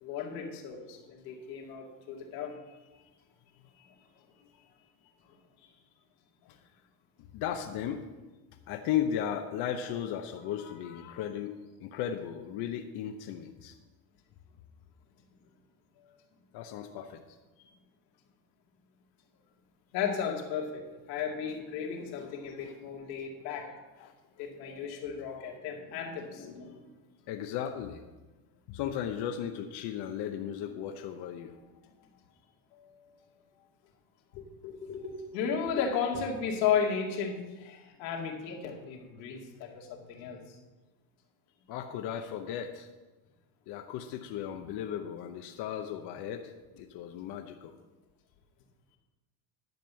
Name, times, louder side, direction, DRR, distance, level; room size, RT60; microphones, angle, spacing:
voice 1, 0.0-2.5 10.6-11.2 19.9-20.8 21.1-23.7 24.4-26.9 30.6-30.7 34.3-40.4, left 7 dB, 85° left, 0 dB, 2.4 m, -34 dB
voice 2, 7.3-8.0 8.7-11.5 11.8-13.7 16.0-16.2 16.5-17.4 22.6-22.7 24.0-25.0 27.3-28.0 28.7-31.5 32.7-33.3 41.7-42.9 43.7-47.7, left 9 dB, 50° left, 4 dB, 0.8 m, -36 dB
10.5 x 5.3 x 7.4 m, 1.2 s
cardioid pair, 135°, 50 cm